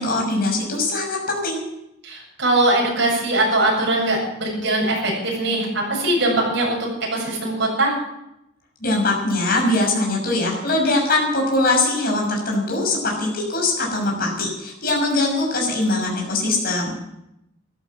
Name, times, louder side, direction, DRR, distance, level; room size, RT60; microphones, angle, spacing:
voice 1, 0.0-1.6 8.8-17.0, left 2 dB, 50° left, 0 dB, 6.2 m, -22 dB
voice 2, 2.0-6.8 7.1-7.9, right 1 dB, 60° right, -2 dB, 7.8 m, -21 dB
14.5 x 13.0 x 7.5 m, 0.85 s
head